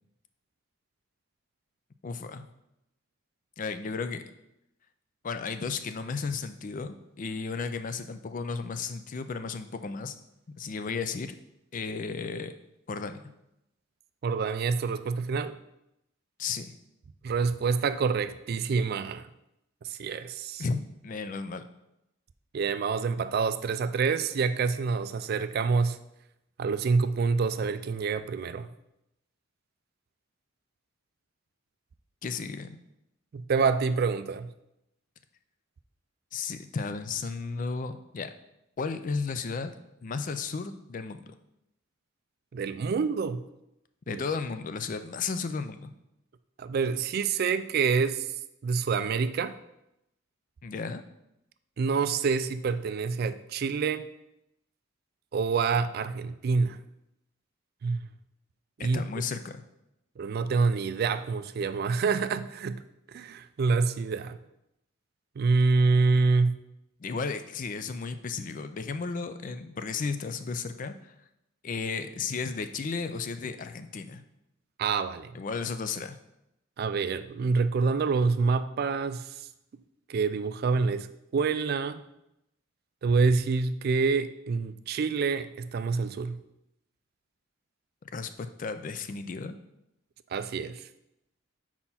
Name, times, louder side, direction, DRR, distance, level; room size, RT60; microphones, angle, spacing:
voice 1, 2.0-2.4 3.6-4.2 5.2-10.1 10.6-11.4 11.7-12.5 12.9-13.2 16.4-16.7 20.6-21.6 32.2-32.8 36.3-38.3 38.8-39.7 40.0-41.4 44.1-45.9 50.6-51.0 58.8-59.6 67.0-71.1 71.6-74.2 75.3-76.2 88.1-89.6, left 4 dB, 40° left, 10 dB, 0.4 m, -34 dB
voice 2, 14.2-15.6 17.2-19.2 19.8-20.6 22.5-26.0 26.6-28.7 33.3-34.5 42.5-43.4 44.1-44.2 46.6-48.3 48.6-49.6 51.8-54.1 55.3-56.8 57.8-58.1 58.8-59.0 60.2-62.8 63.1-64.4 65.4-66.6 74.8-75.4 76.8-79.3 80.1-81.1 81.3-82.0 83.0-86.4 90.3-90.8, right 4 dB, 50° right, 12 dB, 0.3 m, -27 dB
4.4 x 4.3 x 5.6 m, 0.84 s
head